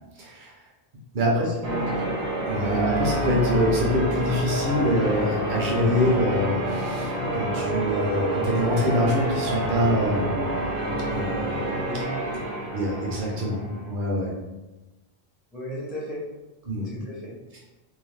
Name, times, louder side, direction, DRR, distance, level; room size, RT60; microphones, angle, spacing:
voice 1, 0.2-0.5 1.1-1.5 2.5-10.5 11.1-11.9 12.7-14.3 16.7-16.9, left 1 dB, 55° right, -3 dB, 0.8 m, -25 dB
voice 2, 1.3-2.2 11.8-12.2 15.5-16.2 16.8-17.4, right 1 dB, ahead, -6 dB, 0.4 m, -35 dB
Church bell, 1.6-13.9, right 1 dB, 85° right, 1.0 m, -28 dB
2.7 x 2.0 x 3.1 m, 1.1 s
omnidirectional pair, 1.1 m